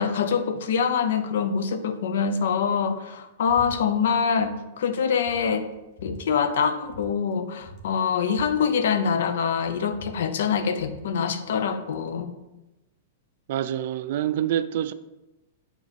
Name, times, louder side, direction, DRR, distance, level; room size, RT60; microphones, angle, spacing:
voice 1, 0.0-5.7 6.0-12.3, left 6 dB, 75° left, 0.7 m, -25 dB
sound 1, 3.5-3.7 4.0-4.5 4.9-5.0 5.3-6.2 6.8-7.1 7.3-7.4 7.6-9.3 9.6-11.0, left 1 dB, 30° left, 1.4 m, -44 dB
voice 2, 13.5-14.9, right 11 dB, 60° right, 0.4 m, -26 dB
7.3 x 3.9 x 5.2 m
hypercardioid pair, 150°, 0 cm